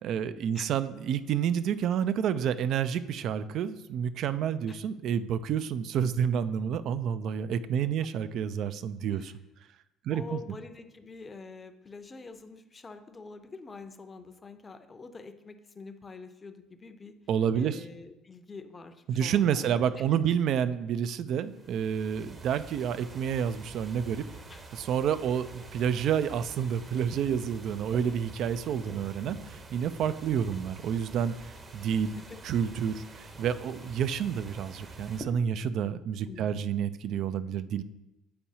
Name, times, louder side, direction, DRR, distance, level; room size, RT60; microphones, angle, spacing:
voice 1, 0.0-9.3 10.1-10.4 17.3-17.8 19.1-24.2 24.7-31.3 31.7-32.1 32.4-37.8, right 8 dB, 60° right, 13 dB, 0.3 m, -29 dB
voice 2, 10.1-17.2 17.5-20.4 24.5-24.7 32.3-32.4 36.3-36.7, left 4 dB, 30° left, 8 dB, 0.6 m, -46 dB
sound 1, 21.4-35.2, right 3 dB, 35° right, 0.9 m, -47 dB
8.5 x 4.6 x 2.8 m, 0.97 s
hypercardioid pair, 65°, 0 cm